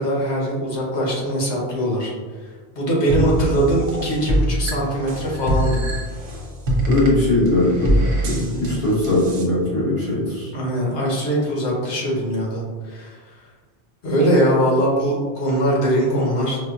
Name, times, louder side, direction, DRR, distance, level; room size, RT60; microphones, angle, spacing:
voice 1, 0.0-2.1 2.4-5.8 8.4-8.7 10.5-13.2 14.0-16.6, right 1 dB, 80° left, -3 dB, 1.2 m, -21 dB
sound 1, 3.1-9.4, right 1 dB, 80° right, 1.0 m, -24 dB
voice 2, 6.9-10.5, left 1 dB, 45° left, -11 dB, 1.8 m, -20 dB
4.7 x 2.2 x 2.3 m, 1.5 s
omnidirectional pair, 1.1 m